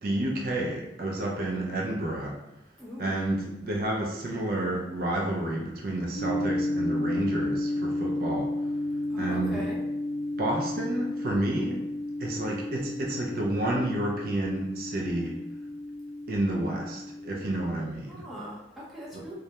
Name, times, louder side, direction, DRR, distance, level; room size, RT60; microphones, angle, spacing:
voice 1, 0.0-2.4 3.0-8.5 9.2-9.6 10.4-11.8 12.2-15.4 16.3-18.2 19.1-19.2, right 1 dB, 50° right, -1 dB, 0.3 m, -30 dB
voice 2, 2.8-3.2 9.1-9.8 18.1-19.3, equal, ahead, -8 dB, 0.5 m, -40 dB
sound 1, 6.2-17.5, left 1 dB, 80° left, 0.6 m, -32 dB
2.2 x 2.0 x 2.8 m, 0.90 s
head